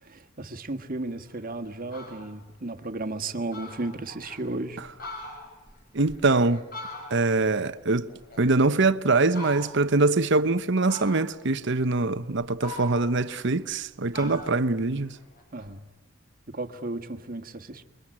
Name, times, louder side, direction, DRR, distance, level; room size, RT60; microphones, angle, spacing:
voice 1, 0.0-4.8 14.2-14.3 15.5-15.8 16.5-17.8, right 2 dB, 45° right, 1.6 m, -34 dB
Fowl, 1.3-1.4 1.8-2.4 2.8-2.9 3.2-3.3 3.5-4.4 4.8-7.5 7.8-8.9 9.3-10.0 10.9-11.5 12.1-13.8 14.1-15.7, left 1 dB, 45° left, 6.3 m, -42 dB
voice 2, 5.9-6.6 7.1-8.1 8.4-15.2, right 3 dB, 60° right, 1.0 m, -23 dB
28.5 x 22.5 x 8.9 m
head